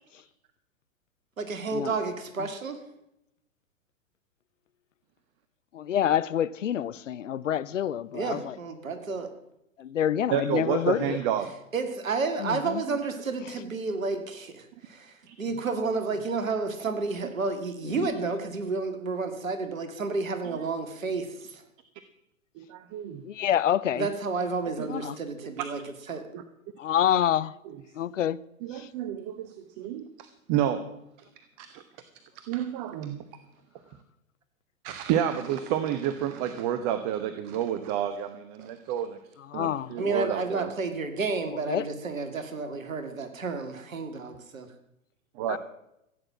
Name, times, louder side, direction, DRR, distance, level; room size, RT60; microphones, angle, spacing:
voice 1, 1.4-2.8 8.1-9.3 11.7-21.6 23.9-25.8 26.1-26.2 38.6-38.7 40.0-44.7, right 4 dB, 70° right, 2.1 m, -31 dB
voice 2, 5.7-8.6 9.8-11.2 12.4-12.8 17.9-18.1 23.2-24.1 24.9-25.1 26.8-27.5 27.9-28.4 28.7-28.9 39.5-39.9 41.5-41.9 45.5-45.6, left 10 dB, 60° left, 0.7 m, -27 dB
voice 3, 10.3-11.6 15.3-15.4 22.6-23.2 24.8-24.9 26.3-26.4 28.6-31.0 31.6-31.8 32.3-33.2 34.8-39.2 39.5-40.7 45.4-45.6, right 10 dB, 30° right, 0.9 m, -30 dB
15.5 x 9.0 x 7.4 m
figure-of-eight pair, 110°, 42 cm